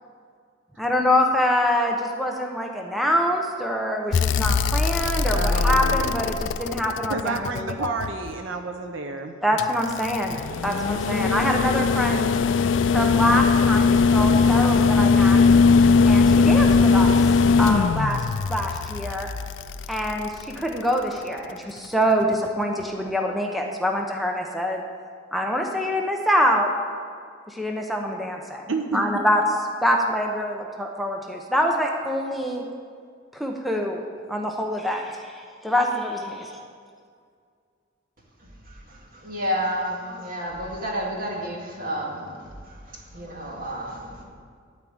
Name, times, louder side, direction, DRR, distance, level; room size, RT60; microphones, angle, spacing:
voice 1, 0.8-7.9 9.4-10.4 10.6-12.3 12.9-15.4 16.1-17.1 17.6-18.2 18.5-19.3 19.9-24.8 25.3-26.7 27.5-28.6 28.9-29.4 29.8-32.6 33.3-34.0 34.3-36.6, equal, ahead, 1 dB, 0.8 m, -25 dB
sound 1, 4.1-8.3 9.6-20.8 22.3-22.4, left 4 dB, 70° left, 0.4 m, -20 dB
voice 2, 5.3-6.1 7.1-9.3 11.3-11.6 28.7-29.0, right 4 dB, 80° right, 5 dB, 0.7 m, -30 dB
voice 3, 39.1-44.2, equal, 50° right, -1 dB, 2.1 m, -31 dB
12.5 x 4.8 x 8.7 m, 2.1 s
head